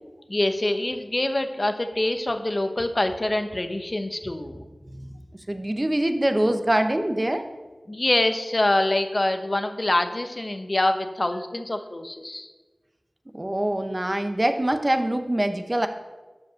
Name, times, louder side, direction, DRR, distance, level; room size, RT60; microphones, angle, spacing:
voice 1, 0.3-4.6 7.9-12.5, left 1 dB, 40° left, 8 dB, 0.9 m, -25 dB
voice 2, 5.5-7.4 13.3-15.9, right 1 dB, 25° right, 7 dB, 0.8 m, -24 dB
12.5 x 5.1 x 6.3 m, 1.3 s
wide cardioid pair, 65°, 0 cm